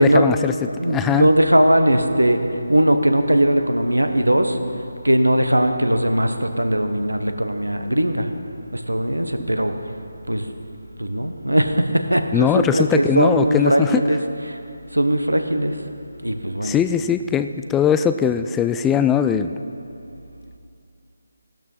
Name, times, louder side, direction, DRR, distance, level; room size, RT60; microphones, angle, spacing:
voice 1, 0.0-0.5 0.9-1.3 12.3-14.0 16.6-19.5, left 8 dB, 10° left, 9 dB, 0.3 m, -20 dB
voice 2, 0.6-2.4 2.7-4.6 5.0-8.3 8.7-9.7 10.3-10.4 11.0-14.2 14.5-14.6 14.9-15.7 16.2-16.8, right 1 dB, 90° right, 7 dB, 1.4 m, -19 dB
16.0 x 12.5 x 5.8 m, 2.6 s
figure-of-eight pair, 155°, 0 cm